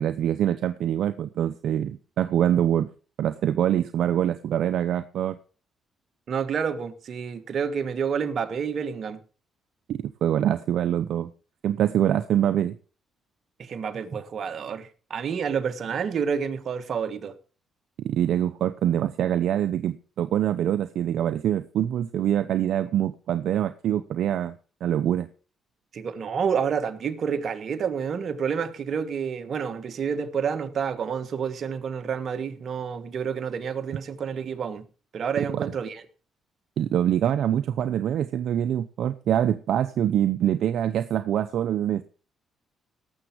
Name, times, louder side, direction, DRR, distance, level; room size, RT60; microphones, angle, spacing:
voice 1, 0.0-2.9 3.2-5.4 9.9-11.3 11.6-12.8 18.0-24.5 24.8-25.3 35.4-35.7 36.8-42.0, right 10 dB, 75° right, 11 dB, 0.6 m, -24 dB
voice 2, 6.3-9.2 13.6-17.3 25.9-34.8 35.1-36.0, right 6 dB, 55° right, 8 dB, 1.5 m, -29 dB
18.0 x 7.2 x 4.5 m, 0.38 s
cardioid pair, 90°, 0 cm